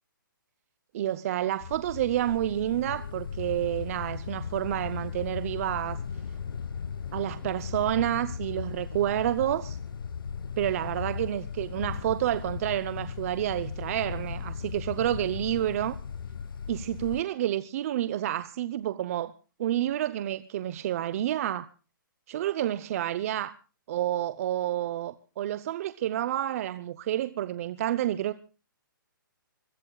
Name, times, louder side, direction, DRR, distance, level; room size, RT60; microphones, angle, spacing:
voice 1, 0.9-6.0 7.1-9.8 10.6-15.9 16.7-19.3 19.6-21.7 22.3-23.5 23.9-28.3, right 12 dB, 40° right, 0.8 m, -29 dB
sound 1, 1.6-17.2, left 6 dB, 75° left, 1.2 m, -37 dB
25.0 x 21.5 x 2.3 m
hypercardioid pair, 150°, 12 cm